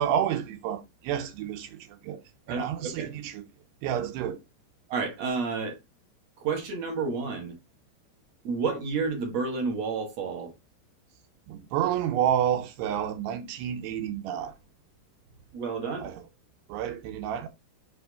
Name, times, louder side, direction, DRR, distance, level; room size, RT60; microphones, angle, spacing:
voice 1, 0.0-1.8 2.0-2.2 2.5-3.4 3.8-4.4 11.5-14.5 16.0-16.1 16.7-17.5, right 10 dB, 80° right, 3.0 m, -29 dB
voice 2, 2.5-3.2 4.9-5.8 6.4-7.6 8.4-10.5 15.5-16.1, right 4 dB, 50° right, 2.1 m, -30 dB
6.3 x 4.5 x 4.1 m
omnidirectional pair, 4.9 m